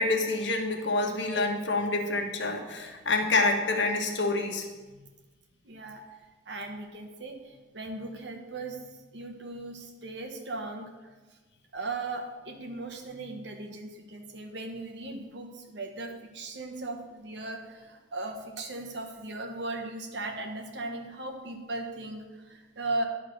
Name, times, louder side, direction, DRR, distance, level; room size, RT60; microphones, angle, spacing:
voice 1, 0.0-4.7, left 3 dB, 75° left, 3 dB, 1.2 m, -27 dB
voice 2, 5.6-6.2 6.5-8.8 9.1-10.9 11.7-23.1, right 2 dB, 70° right, 4 dB, 1.1 m, -37 dB
11.0 x 3.7 x 6.4 m, 1.3 s
head